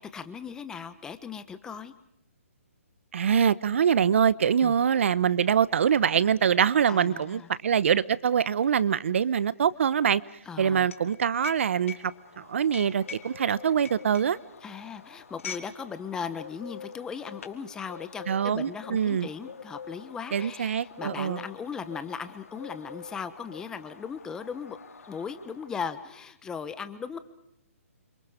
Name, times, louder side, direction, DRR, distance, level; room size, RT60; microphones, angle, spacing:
voice 1, 0.0-1.9 4.6-4.8 6.9-7.5 10.4-10.9 14.6-24.8 25.1-27.2, left 6 dB, 10° left, 12 dB, 1.2 m, -38 dB
voice 2, 3.1-10.2 10.6-11.9 12.4-14.4 18.3-19.3 20.3-21.4, right 8 dB, 55° right, 19 dB, 0.9 m, -24 dB
sound 1, 5.4-5.5 5.8-15.8 16.1-16.3 17.0-17.6, left 7 dB, 65° left, 3.1 m, -44 dB
Bird, 11.5-26.1, left 6 dB, 80° left, 4.9 m, -48 dB
29.5 x 26.0 x 5.1 m, 0.73 s
hypercardioid pair, 160°, 8 cm